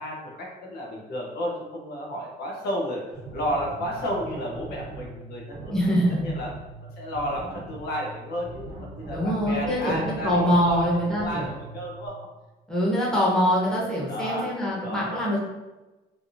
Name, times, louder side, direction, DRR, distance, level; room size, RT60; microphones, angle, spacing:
voice 1, 0.0-5.7 6.2-6.5 6.8-12.2 14.1-15.2, equal, 70° left, -2 dB, 0.8 m, -32 dB
sound 1, 3.1-12.1, right 2 dB, 75° right, 1.1 m, -40 dB
voice 2, 5.7-6.3 9.1-11.5 12.7-15.4, equal, 5° left, -6 dB, 1.0 m, -24 dB
3.2 x 2.7 x 2.6 m, 1.1 s
cardioid pair, 110°, 17 cm